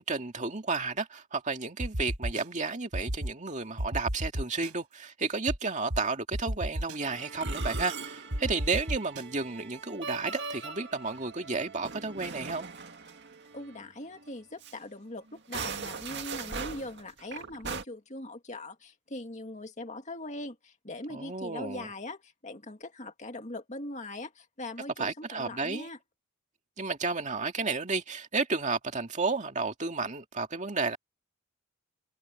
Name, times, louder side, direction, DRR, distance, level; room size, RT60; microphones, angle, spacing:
voice 1, 0.0-12.7 21.1-21.9 25.0-25.9 26.8-31.0, right 4 dB, 35° right, 2.2 m, -32 dB
sound 1, 1.8-2.4 2.9-3.3 3.8-4.7 5.5-5.6 5.9-6.0 6.3-7.0 7.5-7.8 8.3-9.2, equal, 90° right, 5.3 m, -32 dB
Musical instrument, 7.0-13.9 14.2-14.3 14.6-14.7 15.3-17.8, right 5 dB, 50° right, 2.1 m, -40 dB
voice 2, 13.5-26.0, left 1 dB, 35° left, 2.1 m, -41 dB
head